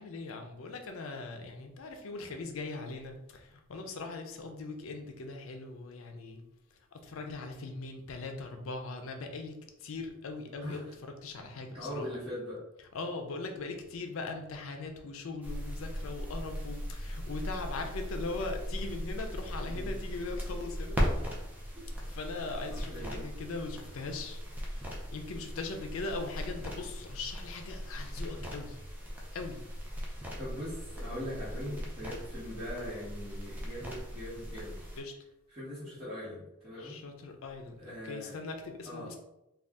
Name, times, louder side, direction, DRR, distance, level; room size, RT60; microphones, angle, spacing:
voice 1, 0.0-6.4 6.7-10.9 11.2-12.1 12.9-21.0 22.0-28.8 29.3-29.6 35.0-35.1 36.8-39.2, left 3 dB, 85° left, 5 dB, 0.5 m, -40 dB
voice 2, 11.7-12.6 19.7-19.9 22.7-23.3 30.4-34.9 35.5-37.0 37.8-38.4 38.8-39.2, equal, 25° right, -13 dB, 1.1 m, -41 dB
sound 1, 15.4-35.0, equal, 10° right, 0.5 m, -38 dB
2.6 x 2.3 x 3.4 m, 0.88 s
head